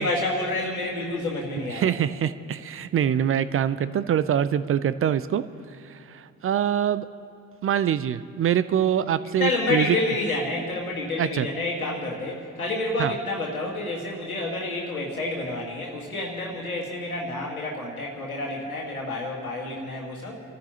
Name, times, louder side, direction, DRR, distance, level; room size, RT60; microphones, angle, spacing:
voice 1, 0.0-2.0 9.4-20.4, left 2 dB, 90° left, -2 dB, 1.9 m, -29 dB
voice 2, 1.7-5.4 5.8-7.1 7.6-10.0 11.2-11.5 13.0-13.1, right 9 dB, 30° right, 14 dB, 0.5 m, -24 dB
29.5 x 14.0 x 3.0 m, 2.6 s
figure-of-eight pair, 45°, 42 cm